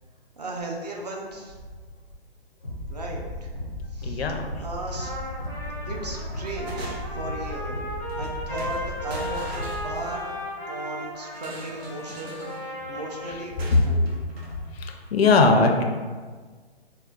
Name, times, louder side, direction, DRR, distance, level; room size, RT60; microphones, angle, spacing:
voice 1, 0.4-1.6 2.9-3.5 3.9-4.2 4.6-5.3 5.9-7.8 8.2-10.3 10.7-12.4 12.6-14.1, right 2 dB, 40° right, 0 dB, 0.5 m, -36 dB
sound 1, 2.6-10.0, left 1 dB, 25° left, 0.4 m, -35 dB
voice 2, 4.0-4.5 14.7-15.8, left 3 dB, 75° left, 4 dB, 0.5 m, -20 dB
Trumpet, 4.9-13.5, equal, 20° right, 0.8 m, -36 dB
sound 2, 5.4-5.8 6.2-7.3 8.1-8.3 8.6-10.4 11.3-12.7 13.6-14.6, right 1 dB, 75° right, 0.8 m, -41 dB
4.8 x 2.1 x 2.3 m, 1.5 s
hypercardioid pair, 170°, 31 cm